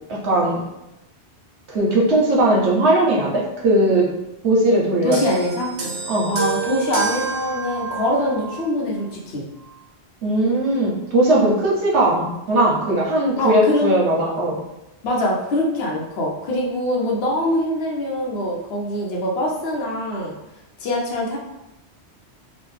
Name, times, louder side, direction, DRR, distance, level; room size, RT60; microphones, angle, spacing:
voice 1, 0.1-0.6 1.7-4.1 4.4-5.2 6.1-6.3 10.2-14.6, right 1 dB, 85° right, -3 dB, 1.1 m, -18 dB
voice 2, 5.0-5.7 6.3-9.4 13.4-13.9 15.0-20.3 20.8-21.4, left 1 dB, 70° left, -2 dB, 0.9 m, -23 dB
sound 1, 5.1-8.7 9.6-9.8, right 5 dB, 65° right, 1.0 m, -29 dB
3.0 x 2.2 x 3.2 m, 0.92 s
omnidirectional pair, 1.1 m